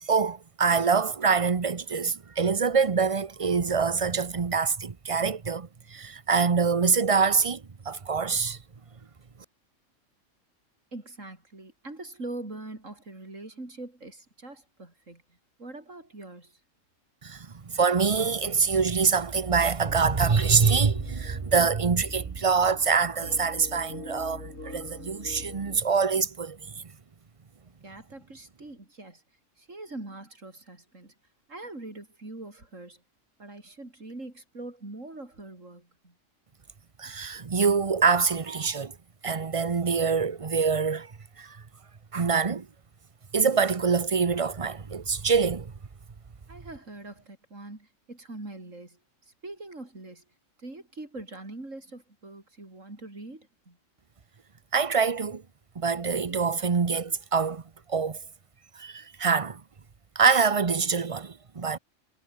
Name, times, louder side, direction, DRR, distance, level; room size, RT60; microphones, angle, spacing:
voice 1, 0.0-8.6 17.2-26.6 37.0-39.0 39.2-41.1 41.4-41.6 42.1-42.7 43.3-45.7 54.7-55.4 55.8-57.6 57.9-58.2 58.8-59.6 60.2-61.8, right 5 dB, 30° right, 0.9 m, -25 dB
voice 2, 10.9-16.6 27.8-29.2 29.6-31.1 31.5-33.0 33.4-36.1 46.5-49.0 49.3-50.2 50.6-53.8, right 2 dB, 85° right, 5.8 m, -43 dB
sound 1, 19.8-25.8, left 2 dB, 85° left, 5.9 m, -44 dB
omnidirectional pair, 1.3 m